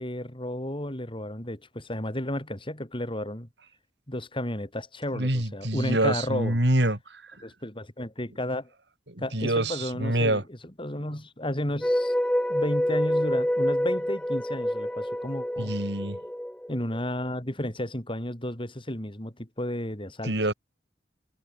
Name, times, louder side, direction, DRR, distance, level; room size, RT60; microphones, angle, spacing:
voice 1, 0.0-3.5 4.1-6.6 7.4-8.7 9.2-12.1 12.5-15.7 16.7-20.4, left 1 dB, 30° left, 5.7 m, -33 dB
voice 2, 5.1-7.0 9.3-10.4 15.6-16.2 20.2-20.5, right 1 dB, 70° right, 4.2 m, -25 dB
sound 1, 11.8-17.0, equal, 5° left, 1.3 m, -27 dB
head